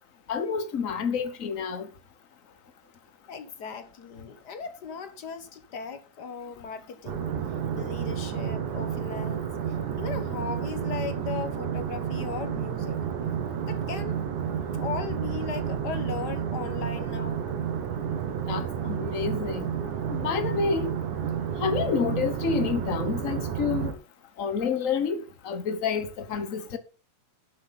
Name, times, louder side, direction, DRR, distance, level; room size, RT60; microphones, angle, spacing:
voice 1, 0.3-1.9 18.5-19.7 20.1-20.9 21.6-23.9 24.4-26.8, left 6 dB, 90° left, 0.7 m, -29 dB
voice 2, 3.3-7.4 7.7-9.5 10.0-13.0 13.6-17.4, left 6 dB, 50° left, 1.3 m, -37 dB
big drone lowered, 7.1-23.9, right 8 dB, 80° right, 3.0 m, -31 dB
11.5 x 9.9 x 4.0 m
omnidirectional pair, 3.5 m